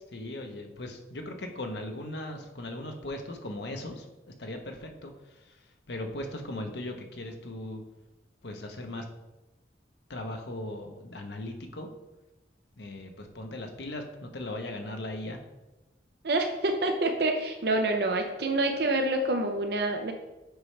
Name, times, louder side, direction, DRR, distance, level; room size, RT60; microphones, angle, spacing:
voice 1, 0.1-4.1 4.4-7.8 8.4-9.0 10.1-11.9 12.8-15.4, left 1 dB, 75° left, 4 dB, 0.9 m, -38 dB
voice 2, 16.2-20.1, right 2 dB, 60° right, 5 dB, 0.6 m, -27 dB
8.0 x 5.5 x 3.3 m, 1.0 s
head